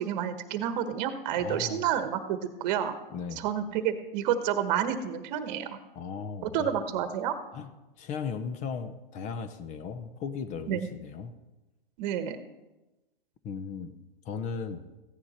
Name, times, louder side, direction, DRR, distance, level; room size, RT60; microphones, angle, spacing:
voice 1, 0.0-3.0 3.4-5.7 6.4-7.3 10.7-10.9 12.0-12.4, right 9 dB, 45° right, 10 dB, 1.2 m, -29 dB
voice 2, 1.4-1.8 3.1-3.4 5.9-6.9 7.5-7.7 8.0-11.3 13.4-13.9 14.2-14.9, left 6 dB, 25° left, 11 dB, 0.7 m, -36 dB
15.0 x 9.8 x 4.3 m, 1.1 s
hypercardioid pair, 125°, 29 cm